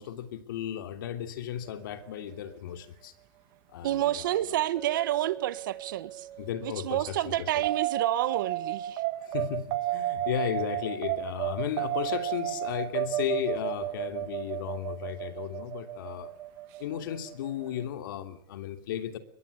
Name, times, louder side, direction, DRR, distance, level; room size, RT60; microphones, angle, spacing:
voice 1, 0.0-3.1 3.7-4.4 6.4-7.6 9.3-16.3 16.8-19.2, left 10 dB, 70° left, 3.0 m, -35 dB
voice 2, 3.8-6.3 6.6-9.0, right 13 dB, 70° right, 1.5 m, -29 dB
Chink clink, 4.8-9.0, right 10 dB, ahead, 3.7 m, -46 dB
sound 1, 7.6-17.8, right 14 dB, 35° right, 1.5 m, -32 dB
23.5 x 21.5 x 8.4 m
supercardioid pair, 175°, 11 cm